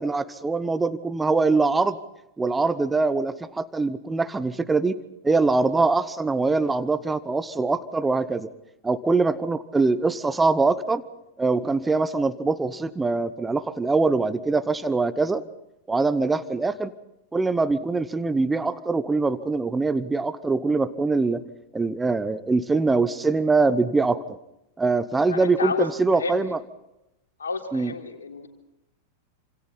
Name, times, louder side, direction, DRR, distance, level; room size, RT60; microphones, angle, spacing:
voice 1, 0.0-2.0 2.4-5.0 5.2-8.5 8.8-11.0 11.4-15.4 15.9-16.9 17.3-21.4 21.7-24.2 24.8-26.6 27.7-27.9, right 3 dB, 10° right, 14 dB, 1.0 m, -23 dB
voice 2, 25.3-26.5 27.4-28.5, left 4 dB, 70° left, 3 dB, 3.4 m, -30 dB
28.5 x 27.0 x 4.3 m, 0.88 s
figure-of-eight pair, 90°, 0 cm